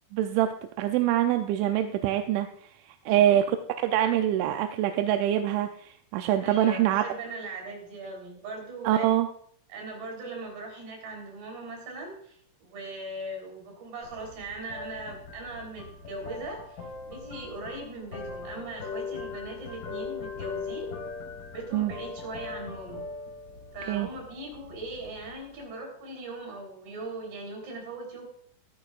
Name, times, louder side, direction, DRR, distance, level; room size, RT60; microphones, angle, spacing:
voice 1, 0.1-0.5 0.8-2.5 3.1-3.4 3.8-7.0 8.8-9.3 21.7-21.9 23.9-24.1, right 12 dB, 80° right, 6 dB, 2.8 m, -24 dB
voice 2, 3.0-3.4 6.4-9.1 9.7-20.9 21.5-23.1 23.7-28.2, right 2 dB, 60° right, 0 dB, 5.7 m, -40 dB
sound 1, 14.0-25.6, left 4 dB, 85° left, 0.8 m, -40 dB
16.5 x 13.0 x 2.5 m, 0.62 s
omnidirectional pair, 5.6 m